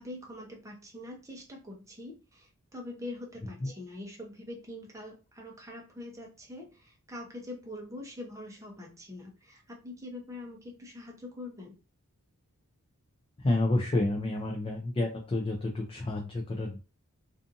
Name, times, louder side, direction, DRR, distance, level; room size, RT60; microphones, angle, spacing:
voice 1, 0.0-11.8, left 1 dB, 15° right, 0 dB, 0.7 m, -44 dB
voice 2, 13.4-16.8, left 2 dB, 25° left, 1 dB, 0.4 m, -29 dB
2.5 x 2.5 x 2.5 m, 0.32 s
head